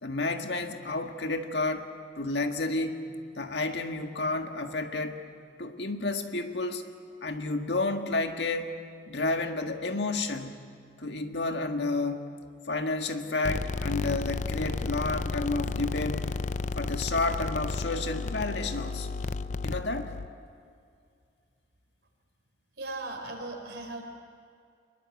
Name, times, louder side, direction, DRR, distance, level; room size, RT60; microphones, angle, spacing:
voice 1, 0.0-1.9 2.1-3.0 3.4-5.2 5.6-6.8 7.2-8.8 9.1-10.7 11.0-12.3 12.7-16.2 16.7-19.1 19.6-20.1, left 2 dB, 70° left, 5 dB, 1.7 m, -31 dB
sound 1, 13.4-20.3, left 3 dB, 45° left, 0.5 m, -32 dB
voice 2, 22.8-24.0, right 2 dB, 70° right, 3 dB, 4.5 m, -37 dB
24.5 x 21.5 x 8.3 m, 2.3 s
head